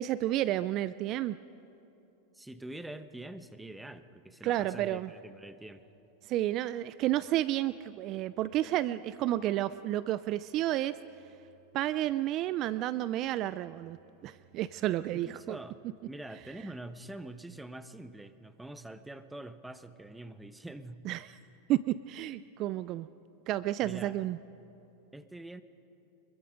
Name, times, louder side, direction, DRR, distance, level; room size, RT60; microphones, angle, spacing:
voice 1, 0.0-1.4 4.4-5.1 6.2-11.0 11.7-14.0 14.2-15.6 21.1-21.3 21.7-23.1 23.5-24.4, right 14 dB, 45° right, 16 dB, 0.4 m, -31 dB
voice 2, 2.3-5.8 15.1-21.1 23.8-24.2 25.1-25.6, right 1 dB, 5° right, 11 dB, 1.0 m, -45 dB
25.5 x 22.0 x 5.2 m, 2.9 s
supercardioid pair, 125°, 0 cm